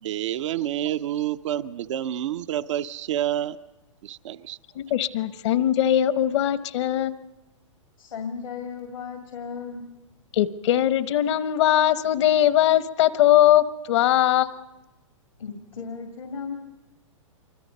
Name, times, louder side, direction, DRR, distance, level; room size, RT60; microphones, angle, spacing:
voice 1, 0.0-3.6 4.0-4.6, right 12 dB, 65° right, 11 dB, 0.7 m, -28 dB
voice 2, 4.8-7.1 10.3-14.5, left 12 dB, 60° left, 14 dB, 1.1 m, -20 dB
voice 3, 8.0-9.9 15.4-16.5, left 5 dB, 85° left, 4 dB, 2.5 m, -35 dB
27.5 x 24.5 x 5.4 m, 1.0 s
hypercardioid pair, 120°, 17 cm